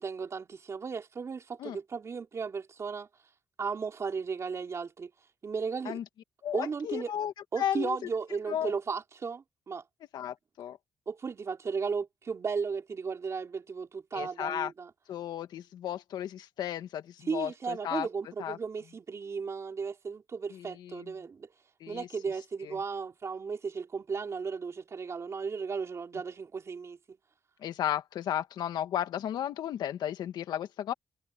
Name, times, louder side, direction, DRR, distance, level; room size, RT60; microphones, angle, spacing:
voice 1, 0.0-3.1 3.6-5.1 5.4-6.0 6.5-7.1 7.5-9.8 11.1-14.9 17.3-21.5 21.9-27.0, right 5 dB, 45° right, 3.3 m, -35 dB
voice 2, 6.4-8.0 8.5-8.7 10.1-10.8 14.1-14.7 15.1-18.1 18.4-18.6 20.5-21.1 21.8-22.1 22.6-22.8 27.6-30.9, left 10 dB, 80° left, 2.0 m, -34 dB
cardioid pair, 95°, 7 cm